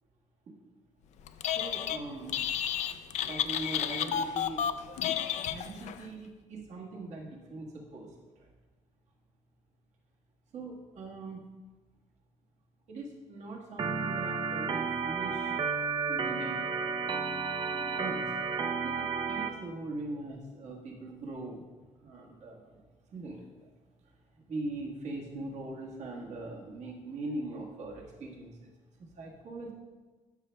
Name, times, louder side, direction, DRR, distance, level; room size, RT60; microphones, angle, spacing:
Telephone, 1.3-2.0 2.3-6.0, left 9 dB, 60° left, 0.4 m, -31 dB
voice 1, 1.5-2.3 3.3-4.6 5.0-5.2 5.4-8.1 8.4-8.5 10.5-11.5 12.9-15.6 16.1-16.6 18.0-18.4 18.8-21.6 22.0-22.8 23.1-23.7 24.5-28.7 29.2-29.7, right 2 dB, 60° right, -1 dB, 1.5 m, -41 dB
Organ, 13.8-19.5, right 5 dB, 35° right, 0.5 m, -32 dB
12.5 x 6.4 x 2.2 m, 1.3 s
cardioid pair, 160°, 13 cm